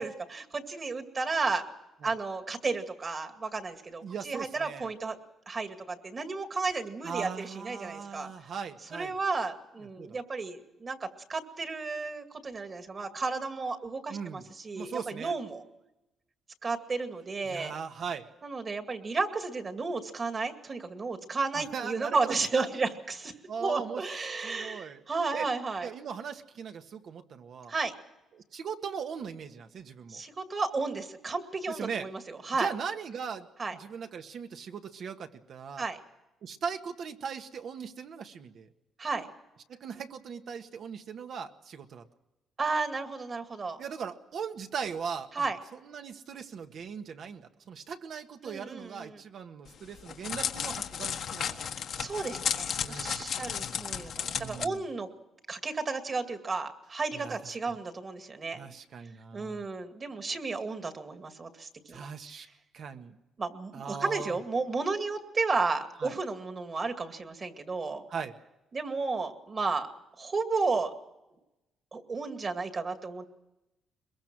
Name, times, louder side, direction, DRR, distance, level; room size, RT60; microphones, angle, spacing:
voice 1, 0.0-1.6 2.0-5.2 5.5-8.3 8.9-15.6 16.6-17.7 18.4-23.3 23.6-25.9 27.7-27.9 30.1-32.7 33.6-33.8 35.8-36.0 39.0-39.3 42.6-43.8 45.3-45.6 48.4-49.2 52.0-55.1 55.5-58.7 59.3-62.1 63.4-68.0 68.7-69.9 70.2-70.9 71.9-73.3, right 4 dB, 35° right, 7 dB, 2.2 m, -33 dB
voice 2, 4.0-4.9 7.0-9.1 10.0-10.2 14.1-14.4 14.7-15.3 17.4-18.2 21.5-22.7 23.5-24.0 24.4-25.0 25.3-25.5 25.8-27.7 28.3-30.2 31.7-32.1 32.5-35.8 36.4-38.7 39.7-42.0 43.8-45.5 45.7-51.7 52.8-53.5 54.3-54.8 57.1-57.4 57.6-57.8 58.5-59.6 61.9-62.5 62.7-63.2 63.7-64.4 66.0-66.1 68.1-68.3, right 6 dB, 65° right, 6 dB, 1.6 m, -39 dB
Crackle, 49.7-54.6, left 8 dB, 65° left, 1.5 m, -34 dB
22.0 x 22.0 x 6.2 m, 0.97 s
cardioid pair, 90°, 0 cm